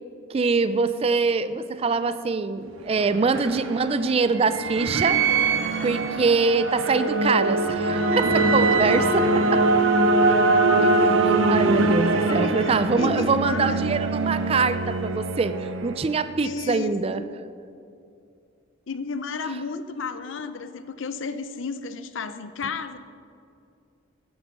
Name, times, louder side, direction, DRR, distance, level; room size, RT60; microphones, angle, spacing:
voice 1, 0.3-5.2 5.8-9.6 10.8-11.2 11.5-17.2, right 4 dB, 30° right, 12 dB, 0.3 m, -24 dB
sound 1, 2.7-16.4, right 3 dB, 75° right, 0.8 m, -23 dB
voice 2, 12.1-13.8 16.4-17.3 18.9-23.0, left 4 dB, 70° left, 11 dB, 0.6 m, -32 dB
11.5 x 8.0 x 5.2 m, 2.5 s
head